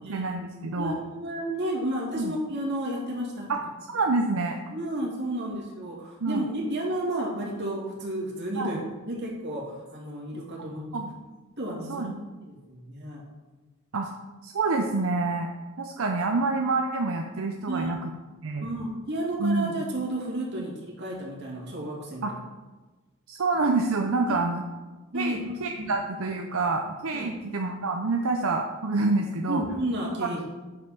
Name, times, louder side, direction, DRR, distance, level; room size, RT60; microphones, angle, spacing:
voice 1, 0.1-1.0 2.2-2.3 3.5-3.6 3.9-4.6 6.2-6.5 8.6-8.8 10.9-11.1 11.9-12.1 13.9-14.1 14.4-15.5 15.8-18.1 18.4-18.7 19.4-19.7 22.2-22.3 23.3-24.6 25.1-29.6 30.2-30.4, right 3 dB, 80° right, 3 dB, 0.7 m, -27 dB
voice 2, 0.8-3.5 4.7-10.9 11.6-12.1 12.4-13.2 17.7-18.0 18.6-20.7 21.0-22.2 25.1-25.5 25.8-25.9 27.1-27.4 29.5-30.4, right 1 dB, 55° right, -3 dB, 2.6 m, -32 dB
8.4 x 5.3 x 5.9 m, 1.2 s
head